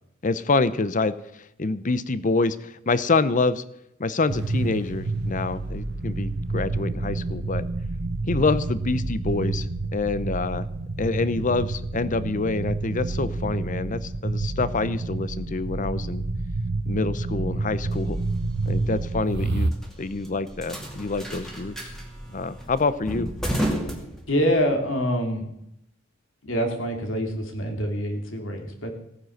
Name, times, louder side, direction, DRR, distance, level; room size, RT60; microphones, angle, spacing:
voice 1, 0.2-3.6 4.0-7.6 8.3-9.7 9.9-10.7 11.0-16.2 16.9-18.2 18.7-19.7 20.0-21.8 22.3-23.3, left 3 dB, 40° left, 15 dB, 0.7 m, -26 dB
sound 1, 4.3-19.7, right 2 dB, 55° right, 0.8 m, -29 dB
sound 2, 17.4-24.7, equal, ahead, 2.4 m, -34 dB
voice 2, 24.3-25.4 26.4-28.9, equal, 70° left, 4 dB, 2.8 m, -25 dB
16.5 x 9.3 x 6.5 m, 0.80 s
head